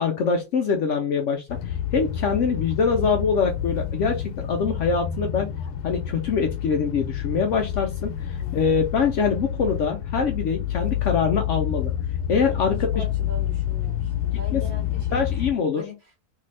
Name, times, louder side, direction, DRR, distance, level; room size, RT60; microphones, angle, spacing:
voice 1, 0.0-5.5 5.8-11.9 12.3-13.0 14.5-14.6 15.1-15.8, left 5 dB, 65° left, 0.8 m, -24 dB
sound 1, 1.5-15.5, left 10 dB, 80° left, 1.1 m, -28 dB
voice 2, 8.4-8.9 12.7-16.1, left 1 dB, 45° right, 1.2 m, -42 dB
3.3 x 2.7 x 3.1 m
omnidirectional pair, 1.6 m